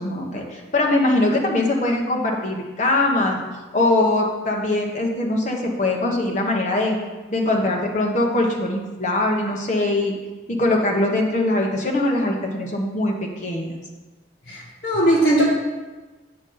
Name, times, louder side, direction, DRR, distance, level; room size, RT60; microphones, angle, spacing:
voice 1, 0.0-3.4 3.7-7.0 7.3-10.1 10.5-13.8, left 2 dB, 40° left, 0 dB, 1.0 m, -22 dB
voice 2, 14.5-15.5, right 1 dB, 70° left, -6 dB, 2.0 m, -19 dB
8.0 x 5.8 x 3.9 m, 1.2 s
head